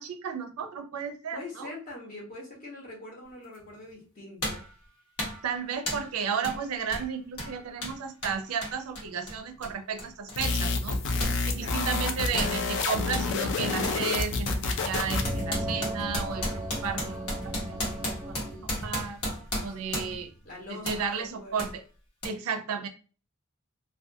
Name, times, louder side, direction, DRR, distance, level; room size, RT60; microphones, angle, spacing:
voice 1, 0.0-1.7 5.4-11.0 11.5-17.3 17.7-17.8 18.1-18.4 18.8-19.2 19.6-20.3 20.7-21.8 22.2-22.9, right 6 dB, 85° right, 6 dB, 0.4 m, -33 dB
voice 2, 1.3-4.6 11.6-11.7 19.6-20.1 20.4-21.6, left 2 dB, 40° left, -2 dB, 0.8 m, -43 dB
sound 1, 3.5-3.7 4.4-4.7 5.2-5.5 5.9-6.1 6.4-6.6 6.9-11.4 11.7-13.3 13.8-14.0 14.4-20.3 20.8-21.0 21.6-21.7 22.2-22.3, left 1 dB, 85° left, 1.1 m, -34 dB
sound 2, 10.3-15.4, left 3 dB, 60° left, 0.4 m, -29 dB
sound 3, 14.6-19.1, right 1 dB, 15° right, 0.6 m, -37 dB
2.4 x 2.2 x 2.6 m, 0.37 s
head